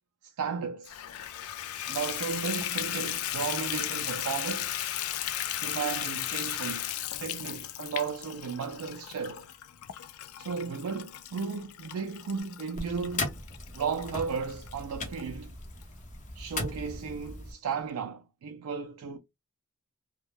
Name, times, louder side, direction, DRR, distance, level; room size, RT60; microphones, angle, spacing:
voice 1, 0.2-1.0 1.9-4.7 5.6-9.4 10.4-13.4 13.7-15.5 16.4-19.2, right 6 dB, 80° right, 0.4 m, -35 dB
Water tap faucet / Bathtub (filling or washing), 0.9-15.2 15.8-15.9 16.4-16.5 16.8-16.9, left 12 dB, 75° left, 0.3 m, -36 dB
sound 1, 12.7-17.5, left 2 dB, 35° left, 0.7 m, -38 dB
2.2 x 2.0 x 3.0 m
head